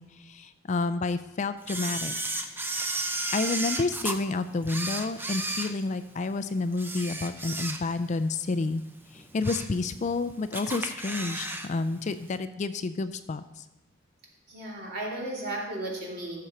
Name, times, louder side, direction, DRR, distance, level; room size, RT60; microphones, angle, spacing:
voice 1, 0.0-2.1 2.7-2.8 3.3-8.8 9.1-13.7, left 3 dB, 35° left, 11 dB, 0.4 m, -30 dB
Camera, 1.7-4.2 4.6-6.3 6.7-8.1 8.5-8.6 9.1-9.8 10.1-10.2 10.5-11.7 11.9-12.0, right 2 dB, 10° right, 0.6 m, -33 dB
voice 2, 14.5-16.5, right 1 dB, 50° right, -3 dB, 2.7 m, -35 dB
14.5 x 6.8 x 4.3 m, 1.0 s
head